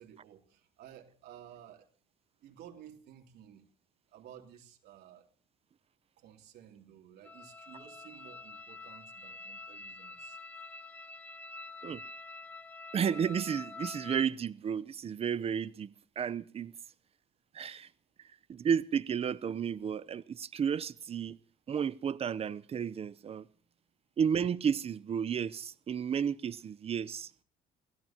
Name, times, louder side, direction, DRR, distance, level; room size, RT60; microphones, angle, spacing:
voice 1, 0.0-1.9 2.4-3.6 4.1-5.3 6.2-10.4, right 10 dB, 75° right, 3.1 m, -54 dB
sound 1, 7.2-14.3, left 3 dB, 10° left, 1.0 m, -47 dB
voice 2, 12.9-16.7 17.5-17.9 18.5-21.4 21.7-23.5 24.2-27.3, right 7 dB, 35° right, 0.7 m, -32 dB
28.5 x 16.5 x 2.9 m
cardioid pair, 110°, 17 cm